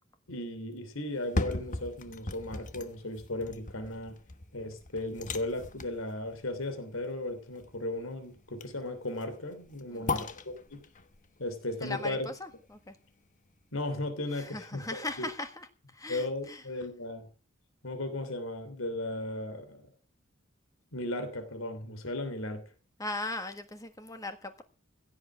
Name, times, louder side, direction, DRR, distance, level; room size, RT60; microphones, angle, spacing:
voice 1, 0.3-4.2 4.5-10.8 11.4-12.3 13.7-15.3 16.1-17.3 17.8-19.9 20.9-22.6, left 1 dB, 90° left, 9 dB, 3.1 m, -36 dB
sound 1, 1.1-13.1 13.5-13.6, left 2 dB, 40° left, 1.2 m, -39 dB
voice 2, 9.9-10.3 11.8-12.3 12.9-13.0 14.3-15.7 15.9-16.6 23.0-24.6, left 2 dB, 15° left, 8 dB, 1.4 m, -38 dB
16.5 x 7.4 x 8.6 m, 0.38 s
head